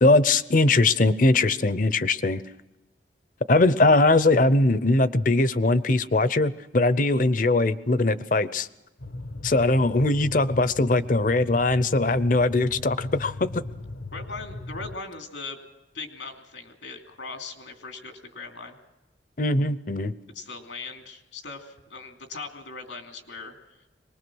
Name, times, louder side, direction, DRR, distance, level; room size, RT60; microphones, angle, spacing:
voice 1, 0.0-2.4 3.5-8.7 9.4-13.6 19.4-20.1, left 2 dB, 45° left, 15 dB, 0.7 m, -21 dB
sound 1, 9.0-15.0, left 2 dB, 70° left, 1.0 m, -38 dB
voice 2, 14.1-15.6 15.9-18.8 20.3-23.5, left 4 dB, 85° left, 5 dB, 2.8 m, -39 dB
23.0 x 20.0 x 6.3 m, 1.0 s
head